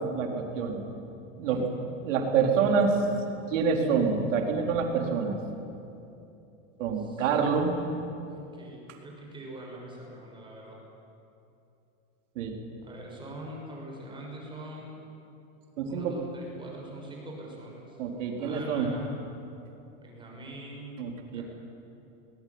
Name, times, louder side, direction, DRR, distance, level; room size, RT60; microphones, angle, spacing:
voice 1, 0.2-0.8 1.4-1.6 2.0-2.9 3.5-5.4 6.8-7.7 12.4-12.6 15.8-16.2 18.0-18.9 21.0-21.4, right 5 dB, 80° right, 2 dB, 4.2 m, -27 dB
voice 2, 2.3-2.8 7.0-7.9 8.3-10.8 12.8-15.0 15.8-18.0 18.4-19.1 20.0-21.0 21.3-21.4, right 1 dB, 15° right, -1 dB, 6.4 m, -44 dB
20.5 x 20.0 x 9.7 m, 2.8 s
supercardioid pair, 150°, 37 cm